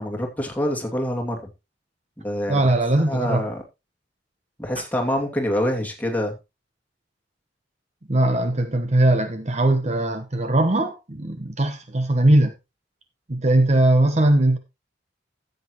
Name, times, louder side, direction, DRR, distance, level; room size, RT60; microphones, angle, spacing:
voice 1, 0.0-1.5 2.2-2.7 3.1-3.6 4.6-6.3, left 1 dB, 10° left, 2.5 m, -26 dB
voice 2, 2.5-3.5 8.1-12.5 13.3-14.6, right 1 dB, 40° right, 1.0 m, -20 dB
14.0 x 8.0 x 3.0 m
head